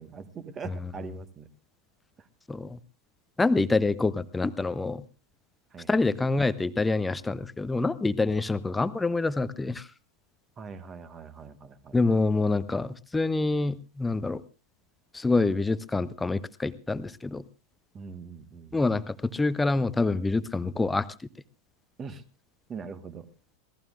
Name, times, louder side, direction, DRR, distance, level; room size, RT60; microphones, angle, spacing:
voice 1, 0.0-1.5 2.2-2.3 5.7-6.1 10.6-12.0 17.9-18.8 22.0-22.2 22.7-23.3, right 5 dB, 25° right, 12 dB, 1.4 m, -42 dB
voice 2, 2.5-2.8 3.4-5.0 5.9-9.9 11.9-14.4 15.1-17.4 18.7-21.1, left 3 dB, 10° left, 15 dB, 0.7 m, -26 dB
26.5 x 17.5 x 2.5 m, 0.33 s
figure-of-eight pair, 90°, 0 cm